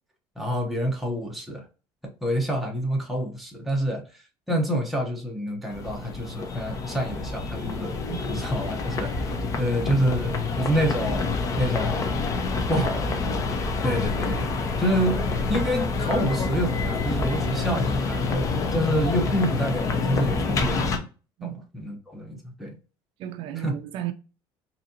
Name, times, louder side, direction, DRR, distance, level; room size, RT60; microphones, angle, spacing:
voice 1, 0.4-1.6 2.0-4.0 4.5-8.0 8.3-12.2 12.7-13.4 13.8-15.2 15.5-18.5 18.7-21.1 21.4-22.7 23.6-23.7, equal, ahead, 0.9 m, -28 dB
sound 1, 5.7-21.0, left 3 dB, 35° left, 0.6 m, -27 dB
voice 2, 23.2-24.1, right 13 dB, 60° right, 0.4 m, -33 dB
3.9 x 2.7 x 2.7 m
cardioid pair, 140°, 10 cm